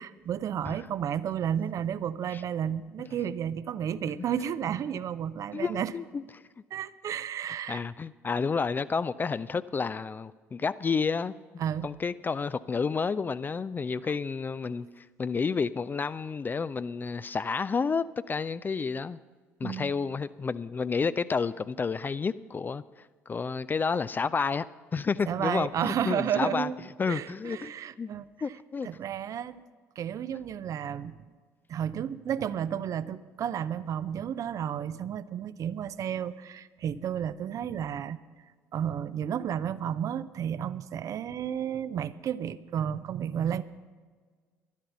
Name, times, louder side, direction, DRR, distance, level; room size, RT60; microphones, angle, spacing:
voice 1, 0.0-5.9 6.7-7.8 11.6-11.9 19.6-19.9 25.3-26.8 27.1-28.3 28.8-29.6 30.0-31.2 31.7-38.2 38.7-43.6, right 9 dB, 45° right, 0.5 m, -32 dB
voice 2, 5.5-6.2 7.7-11.4 11.8-19.2 19.6-22.8 23.3-24.7 24.9-26.7 27.0-28.1 28.4-28.9, left 5 dB, 25° left, 0.3 m, -30 dB
11.5 x 11.5 x 5.9 m
figure-of-eight pair, 50°, 8 cm